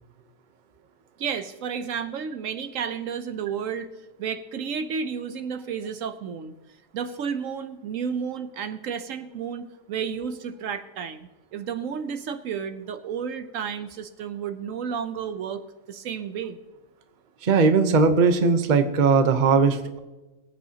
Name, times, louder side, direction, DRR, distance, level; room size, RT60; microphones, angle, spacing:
voice 1, 1.2-3.9 4.2-6.5 6.9-15.6 15.9-16.6 17.6-17.7, right 7 dB, 75° right, 10 dB, 1.0 m, -32 dB
voice 2, 17.4-20.0, right 4 dB, 40° right, 8 dB, 0.9 m, -19 dB
21.5 x 9.0 x 2.8 m, 1.1 s
omnidirectional pair, 1.4 m